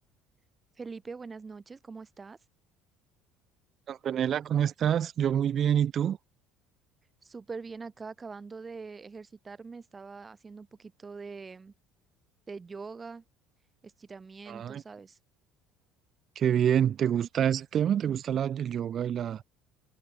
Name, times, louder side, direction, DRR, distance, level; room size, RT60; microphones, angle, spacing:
voice 1, 0.8-2.4 7.2-11.7 12.5-13.2 13.8-15.2, right 4 dB, 25° right, 2.1 m, -43 dB
voice 2, 3.9-6.2 14.5-14.8 16.4-19.4, right 9 dB, 50° right, 0.5 m, -27 dB
hypercardioid pair, 70°, 0 cm